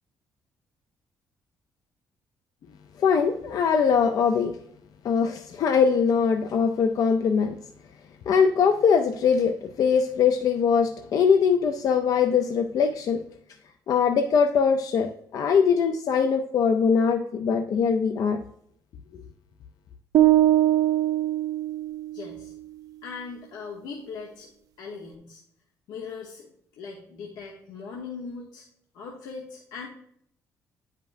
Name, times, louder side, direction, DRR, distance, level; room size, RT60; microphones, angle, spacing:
voice 1, 3.0-4.5 5.0-7.6 8.3-13.2 13.9-18.4 19.1-19.2, left 6 dB, 60° left, 6 dB, 0.5 m, -22 dB
sound 1, 20.1-22.3, right 13 dB, 65° right, 0.4 m, -21 dB
voice 2, 22.1-22.5 23.0-24.5 24.8-25.4 25.9-26.5 26.8-28.7 28.9-29.9, left 5 dB, 85° left, -1 dB, 1.0 m, -39 dB
9.2 x 5.2 x 2.6 m, 0.69 s
cardioid pair, 100°, 7 cm